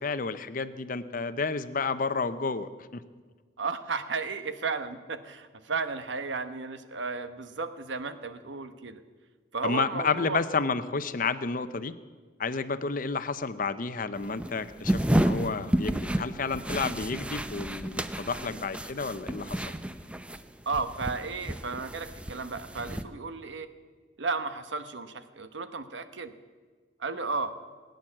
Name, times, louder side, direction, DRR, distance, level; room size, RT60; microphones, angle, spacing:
voice 1, 0.0-3.0 9.6-11.9 12.4-19.7, left 4 dB, 50° left, 12 dB, 0.7 m, -31 dB
voice 2, 3.6-9.0 9.5-10.4 20.7-23.7 24.2-26.3 27.0-27.5, right 4 dB, 80° right, 10 dB, 1.1 m, -34 dB
sound 1, 14.1-20.4 20.7-23.0, right 1 dB, 5° right, 0.6 m, -31 dB
20.5 x 9.4 x 7.4 m, 1.5 s
head